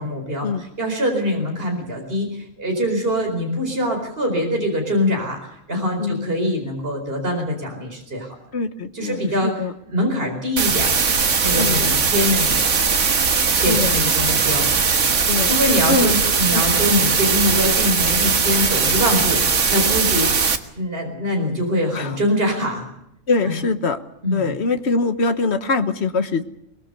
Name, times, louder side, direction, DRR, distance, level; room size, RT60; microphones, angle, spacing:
voice 1, 0.0-8.4 8.9-9.5 9.9-11.0 11.4-12.7 13.6-14.7 15.5-22.8 23.4-23.5 24.2-24.5, left 1 dB, 45° right, 2 dB, 4.8 m, -23 dB
voice 2, 8.5-9.7 11.5-11.9 13.7-14.0 15.3-15.5 15.9-16.1 16.5-17.1 20.1-20.2 21.9-22.2 23.3-24.0 24.3-26.4, left 3 dB, 55° left, 9 dB, 1.5 m, -23 dB
sound 1, 10.6-20.6, right 5 dB, 65° right, 1.8 m, -19 dB
23.0 x 21.0 x 6.8 m, 0.79 s
omnidirectional pair, 1.3 m